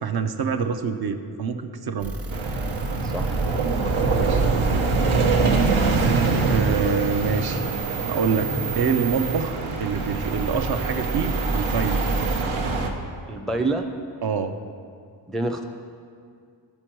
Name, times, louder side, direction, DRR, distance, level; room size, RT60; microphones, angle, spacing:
voice 1, 0.0-2.1 4.1-4.8 6.5-7.7 8.1-12.0 14.2-14.5, right 5 dB, 50° right, 7 dB, 0.6 m, -26 dB
sound 1, 2.0-12.4, right 6 dB, 30° right, 1.0 m, -36 dB
sound 2, 2.3-12.9, right 3 dB, 80° right, 1.0 m, -24 dB
voice 2, 3.0-3.4 13.3-13.8 15.3-15.6, right 2 dB, ahead, 4 dB, 0.4 m, -27 dB
13.0 x 4.4 x 4.5 m, 2.3 s
cardioid pair, 95°, 48 cm